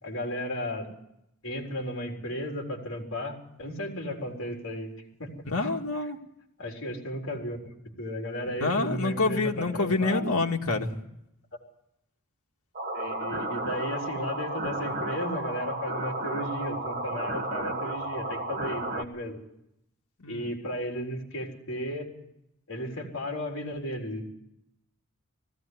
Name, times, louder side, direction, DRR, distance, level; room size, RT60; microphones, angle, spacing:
voice 1, 0.0-0.9 1.4-4.9 5.2-5.3 6.6-10.2 12.9-19.4 20.3-22.1 22.7-24.2, equal, 60° left, 1 dB, 4.0 m, -34 dB
voice 2, 5.5-6.2 8.6-11.0 20.2-20.5, left 3 dB, 85° left, 1 dB, 2.0 m, -27 dB
sound 1, 12.7-19.0, right 2 dB, 40° right, 1.5 m, -33 dB
19.0 x 16.0 x 9.5 m, 0.83 s
head